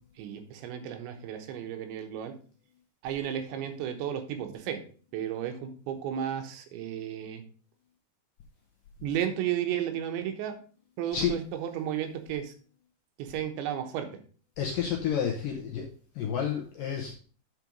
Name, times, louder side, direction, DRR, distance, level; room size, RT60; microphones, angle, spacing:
voice 1, 0.2-2.3 3.0-4.8 5.1-7.4 9.0-10.6 11.0-12.5 13.2-14.1, right 10 dB, 80° right, 6 dB, 3.3 m, -33 dB
voice 2, 14.6-15.9 16.2-17.1, left 8 dB, 75° left, 1 dB, 2.1 m, -30 dB
8.9 x 4.8 x 5.2 m, 0.40 s
omnidirectional pair, 5.1 m